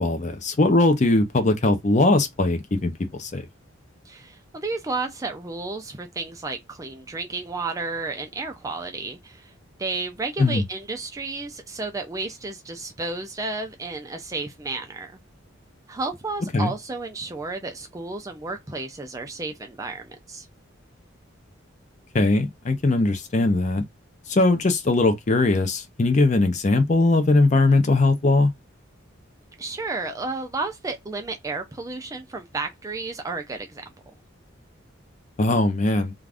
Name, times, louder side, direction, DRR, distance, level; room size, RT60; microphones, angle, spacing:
voice 1, 0.0-3.4 10.4-10.6 16.5-16.7 22.1-23.8 24.3-28.5 35.4-36.1, left 2 dB, 35° left, 0.5 m, -20 dB
voice 2, 4.1-9.5 9.8-15.1 15.9-20.5 29.6-33.8, right 3 dB, 15° right, 0.3 m, -32 dB
2.5 x 2.4 x 3.3 m
head